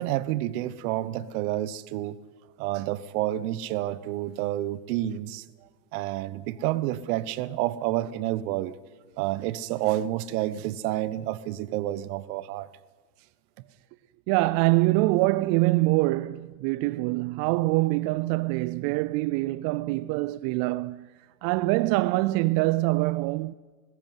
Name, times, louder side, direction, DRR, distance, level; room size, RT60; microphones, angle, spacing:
voice 1, 0.0-2.2 2.6-5.4 5.9-8.7 9.2-12.7, right 14 dB, 60° right, 1.2 m, -29 dB
voice 2, 14.3-21.1 21.4-23.5, right 20 dB, 45° right, 0.5 m, -24 dB
19.5 x 15.5 x 9.4 m
hypercardioid pair, 100°, 50 cm